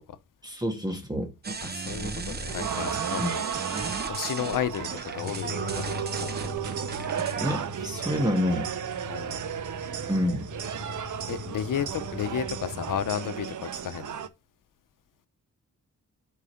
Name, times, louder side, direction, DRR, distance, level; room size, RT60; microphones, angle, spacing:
voice 1, 0.4-1.3 3.2-3.3 7.4-8.7 10.1-10.5, equal, 10° right, 1.4 m, -28 dB
sound 1, 1.4-7.4, right 4 dB, 30° right, 0.8 m, -36 dB
voice 2, 1.6-3.5 4.1-6.3 9.1-9.6 11.3-14.2, left 9 dB, 90° left, 0.7 m, -33 dB
sound 2, 2.5-14.3, right 9 dB, 70° right, 0.7 m, -34 dB
sound 3, 5.2-13.1, left 5 dB, 35° left, 2.2 m, -41 dB
4.9 x 4.7 x 5.6 m
wide cardioid pair, 110°, 32 cm